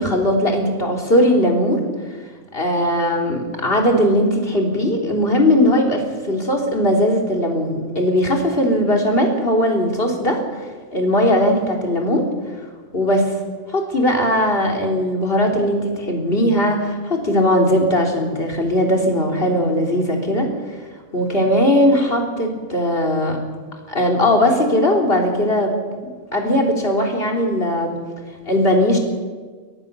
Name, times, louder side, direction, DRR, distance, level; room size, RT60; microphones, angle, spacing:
voice 1, 0.0-1.8 2.5-10.4 10.9-12.3 12.9-13.3 13.7-20.5 21.1-23.4 23.9-25.8 26.3-28.0 28.5-29.0, left 1 dB, 40° left, 2 dB, 3.7 m, -18 dB
23.5 x 17.5 x 6.9 m, 1.5 s
omnidirectional pair, 1.5 m